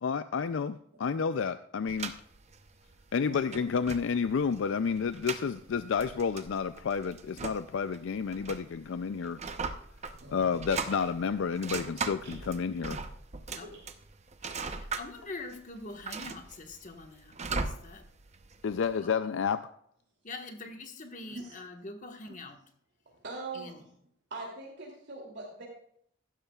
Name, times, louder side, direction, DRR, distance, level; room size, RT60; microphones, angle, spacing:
voice 1, 0.0-2.2 3.1-9.4 10.3-13.0 18.6-19.6, left 6 dB, 65° left, 12 dB, 0.4 m, -30 dB
sound 1, 1.9-18.9, right 4 dB, 35° right, 0.7 m, -40 dB
voice 2, 10.2-10.6 12.2-12.3 13.5-13.8 21.3-21.5 23.1-23.9 24.3-25.7, right 3 dB, 55° right, -3 dB, 2.8 m, -42 dB
voice 3, 14.4-18.0 19.0-19.1 20.2-22.6 23.5-23.8, left 2 dB, 40° left, 5 dB, 1.4 m, -44 dB
15.5 x 12.5 x 2.4 m, 0.68 s
head